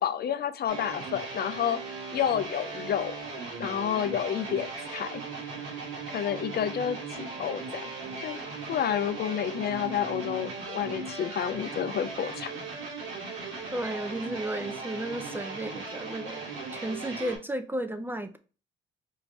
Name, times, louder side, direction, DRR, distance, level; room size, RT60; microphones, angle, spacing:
voice 1, 0.0-1.8 2.1-3.1 3.6-5.2 6.1-7.9 8.2-8.4 8.7-12.5, left 9 dB, 55° left, 0.4 m, -30 dB
sound 1, 0.7-17.4, right 4 dB, 85° right, 1.8 m, -38 dB
voice 2, 13.7-16.4 16.7-18.4, right 1 dB, 10° right, 0.5 m, -33 dB
4.6 x 2.6 x 3.2 m
cardioid pair, 90°, 20 cm